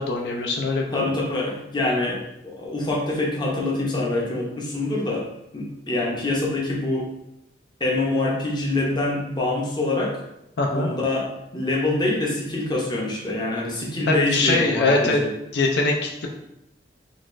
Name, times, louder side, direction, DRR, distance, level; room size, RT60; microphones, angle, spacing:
voice 1, 0.0-1.1 10.6-10.9 14.1-15.2 15.5-16.3, left 2 dB, 70° left, 0 dB, 0.4 m, -22 dB
voice 2, 0.9-5.3 5.5-7.1 7.8-10.2 10.7-15.3, left 2 dB, 25° left, -3 dB, 0.6 m, -25 dB
3.9 x 2.4 x 2.5 m, 0.85 s
head